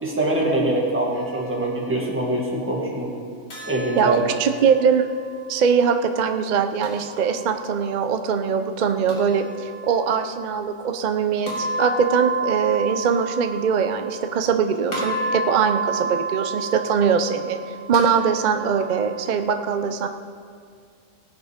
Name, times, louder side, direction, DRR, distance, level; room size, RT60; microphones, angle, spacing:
voice 1, 0.0-3.1 3.7-4.2, right 1 dB, 10° right, -4 dB, 2.0 m, -23 dB
sound 1, 3.5-5.6 6.8-7.8 9.1-10.3 11.5-14.6 14.9-19.3, right 3 dB, 85° left, 3.0 m, -31 dB
voice 2, 4.0-5.1 5.5-20.1, right 6 dB, 45° right, 7 dB, 0.6 m, -22 dB
18.0 x 8.0 x 5.1 m, 2.2 s
omnidirectional pair, 1.4 m